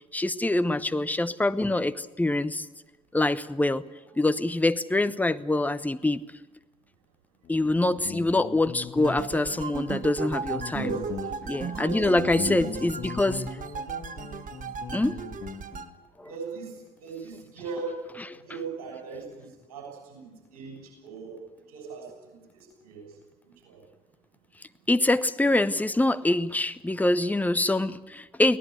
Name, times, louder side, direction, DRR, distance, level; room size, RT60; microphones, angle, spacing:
voice 1, 0.1-2.7 3.1-3.8 4.2-6.2 7.5-11.0 11.5-13.4 14.9-15.2 16.2-16.3 24.9-28.6, left 2 dB, 10° left, 12 dB, 0.9 m, -25 dB
Guitar, 7.4-15.9, left 6 dB, 50° left, 2.1 m, -39 dB
sound 1, 9.0-15.9, right 6 dB, 45° right, 1.4 m, -36 dB
voice 2, 11.8-12.7 16.2-18.0 18.4-21.3 21.7-23.0 23.6-23.8, right 5 dB, 70° right, 2 dB, 6.7 m, -39 dB
24.0 x 17.0 x 8.2 m, 1.1 s
figure-of-eight pair, 45°, 19 cm